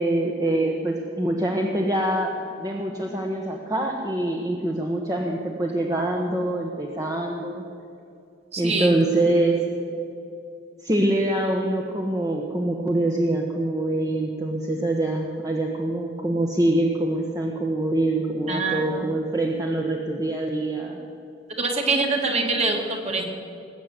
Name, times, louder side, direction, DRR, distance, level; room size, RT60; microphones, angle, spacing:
voice 1, 0.0-7.6 8.6-9.6 10.8-21.0, right 1 dB, 20° right, 0 dB, 1.1 m, -24 dB
voice 2, 8.5-8.9 18.5-19.0 21.6-23.3, right 3 dB, 35° right, 2 dB, 2.1 m, -24 dB
20.0 x 8.2 x 8.1 m, 2.6 s
head